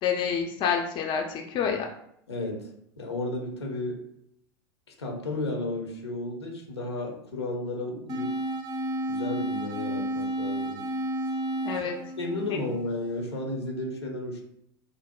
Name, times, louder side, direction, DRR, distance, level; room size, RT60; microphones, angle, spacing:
voice 1, 0.0-1.9 11.6-12.0, left 7 dB, 40° left, 2 dB, 0.5 m, -28 dB
voice 2, 2.3-2.7 3.0-4.0 5.0-8.4 9.1-10.8 12.2-14.4, left 2 dB, 85° left, 1 dB, 0.8 m, -33 dB
sound 1, 8.1-13.1, right 1 dB, 30° right, 0.4 m, -31 dB
3.8 x 2.0 x 2.2 m, 0.72 s
hypercardioid pair, 90°, 14 cm